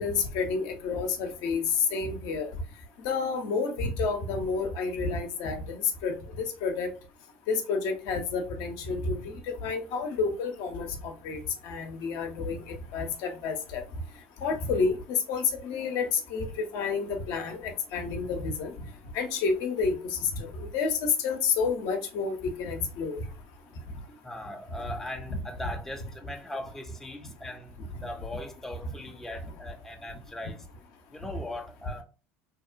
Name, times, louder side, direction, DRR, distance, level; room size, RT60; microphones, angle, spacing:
voice 1, 0.0-1.6 1.9-2.5 3.0-5.8 6.0-6.9 7.5-9.2 9.5-13.8 14.4-16.5 16.7-18.7 19.1-20.0 20.2-23.2, left 4 dB, 65° left, 0.5 m, -30 dB
voice 2, 24.1-30.7 31.1-32.0, left 1 dB, 5° left, 0.5 m, -40 dB
2.8 x 2.1 x 2.4 m
hypercardioid pair, 70°, 7 cm